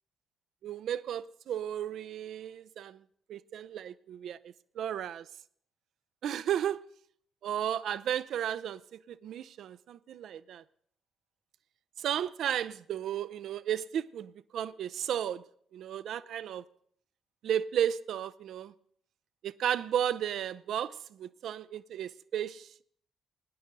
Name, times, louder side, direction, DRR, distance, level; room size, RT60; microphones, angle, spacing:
voice 1, 0.6-3.0 3.3-5.3 6.2-6.8 7.4-8.8 9.1-10.6 12.0-15.4 15.7-16.6 17.4-18.7 19.4-22.8, right 10 dB, 60° right, 0.4 m, -34 dB
18.0 x 9.8 x 3.9 m
figure-of-eight pair, 40°, 0 cm